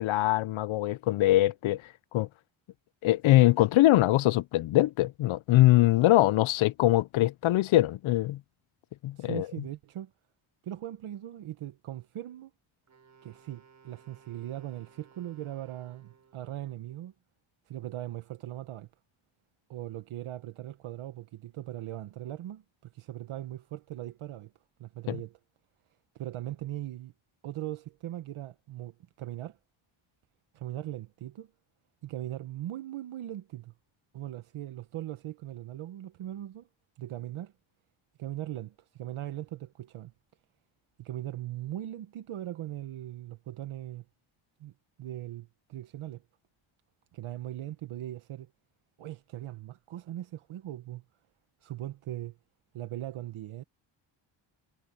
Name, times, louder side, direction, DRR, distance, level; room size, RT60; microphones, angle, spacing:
voice 1, 0.0-1.8 2.1-2.3 3.0-8.4 9.0-9.5 25.1-25.2, left 16 dB, 75° left, 0.6 m, -23 dB
voice 2, 9.2-10.1 10.6-12.5 13.2-17.1 17.7-18.9 19.7-24.5 24.8-25.4 26.1-27.1 27.4-29.6 30.5-31.5 32.0-33.7 34.1-36.7 37.0-37.5 38.2-40.1 41.0-44.0 44.6-44.7 45.0-46.2 47.1-48.5 49.0-51.0 51.6-52.4 52.7-53.6, right 13 dB, 90° right, 1.1 m, -39 dB
Wind instrument woodwind instrument, 12.9-16.6, right 6 dB, 35° right, 5.9 m, -60 dB
wide cardioid pair, 175°, 48 cm